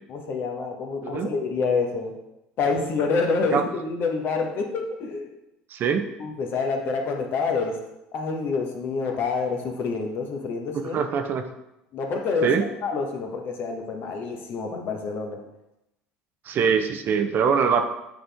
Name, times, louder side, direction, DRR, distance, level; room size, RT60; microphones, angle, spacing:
voice 1, 0.1-2.1 2.6-5.3 6.2-7.8 8.1-11.0 11.9-12.5 12.8-15.4, left 4 dB, 55° left, 2 dB, 1.2 m, -27 dB
voice 2, 5.7-6.0 10.9-11.4 12.4-12.6 16.5-17.8, right 6 dB, 50° right, 7 dB, 0.7 m, -22 dB
7.7 x 4.2 x 3.5 m, 0.90 s
hypercardioid pair, 70°, 4 cm